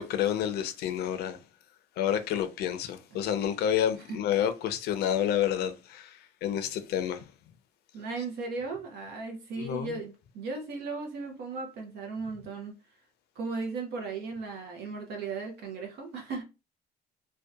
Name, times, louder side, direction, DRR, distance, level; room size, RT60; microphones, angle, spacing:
voice 1, 0.0-1.4 2.0-7.2 9.6-10.0, left 10 dB, 70° left, 0.5 m, -29 dB
voice 2, 7.9-12.8 13.4-16.4, right 4 dB, 75° right, 0.6 m, -36 dB
2.7 x 2.2 x 2.3 m
cardioid pair, 110°, 17 cm